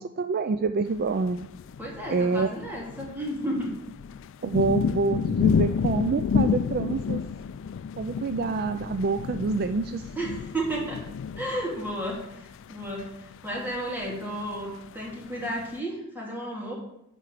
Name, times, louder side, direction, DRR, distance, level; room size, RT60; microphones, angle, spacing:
voice 1, 0.0-1.5 2.1-2.5 4.4-7.2 8.0-10.0, right 4 dB, 45° right, 10 dB, 0.4 m, -27 dB
sound 1, 1.0-15.8, left 6 dB, 65° left, 0.3 m, -30 dB
voice 2, 1.8-3.7 10.1-11.0 11.4-16.8, right 1 dB, 10° right, -3 dB, 3.1 m, -33 dB
10.5 x 4.5 x 7.8 m, 0.81 s
head